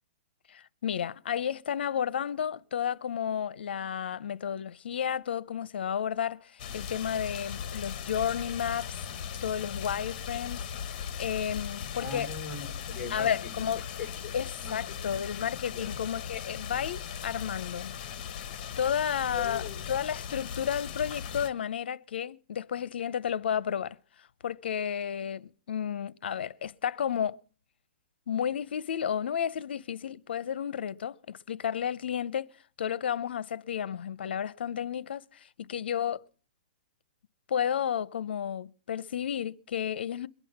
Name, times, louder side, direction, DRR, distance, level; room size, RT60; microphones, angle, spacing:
voice 1, 0.5-9.0 9.4-10.6 11.2-12.3 13.1-13.8 14.3-17.9 18.8-27.4 28.3-32.5 32.8-36.2 37.5-40.3, left 8 dB, 70° left, 0.7 m, -32 dB
sound 1, 6.6-21.5, left 8 dB, 40° left, 1.4 m, -38 dB
voice 2, 12.0-13.3 13.6-13.7 14.0-14.3 14.6-14.8 15.7-16.0 19.3-19.9, left 5 dB, 10° left, 4.3 m, -40 dB
22.0 x 9.1 x 5.9 m
hypercardioid pair, 160°, 6 cm